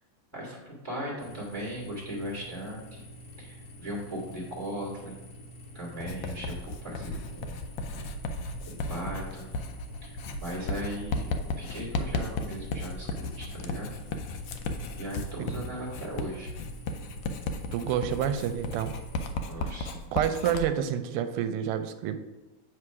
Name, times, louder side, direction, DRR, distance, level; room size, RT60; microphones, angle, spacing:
voice 1, 0.3-3.0 3.4-5.2 5.7-7.7 8.7-9.5 10.0-10.1 10.4-11.3 11.6-13.9 14.9-16.5 19.4-20.1, equal, 10° left, -6 dB, 1.5 m, -38 dB
sound 1, 1.2-19.4, equal, 50° left, 1.5 m, -47 dB
Writing, 6.0-20.7, left 2 dB, 75° left, 1.3 m, -35 dB
voice 2, 15.4-15.7 17.7-19.0 19.6-19.8 20.1-22.2, right 9 dB, 90° right, 9 dB, 1.5 m, -29 dB
7.7 x 3.3 x 4.7 m, 1.1 s
omnidirectional pair, 2.4 m